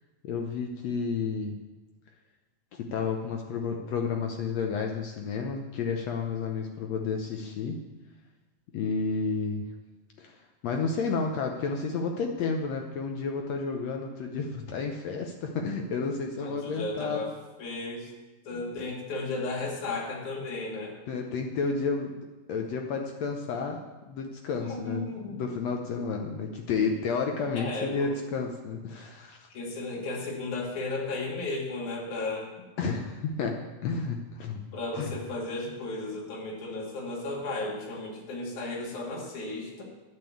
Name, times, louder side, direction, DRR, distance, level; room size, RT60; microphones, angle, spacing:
voice 1, 0.2-1.6 2.7-7.8 8.7-9.6 10.2-10.4 10.6-17.2 18.5-18.7 21.1-22.1 22.5-23.8 24.1-29.5 32.8-34.6 34.9-35.1, left 5 dB, 80° left, 2 dB, 1.5 m, -31 dB
voice 2, 16.4-17.3 17.6-18.1 18.4-21.0 24.6-25.4 27.5-28.1 29.5-32.5 34.7-39.8, left 2 dB, 55° left, -3 dB, 3.7 m, -34 dB
11.0 x 7.6 x 8.4 m, 1.2 s
omnidirectional pair, 4.2 m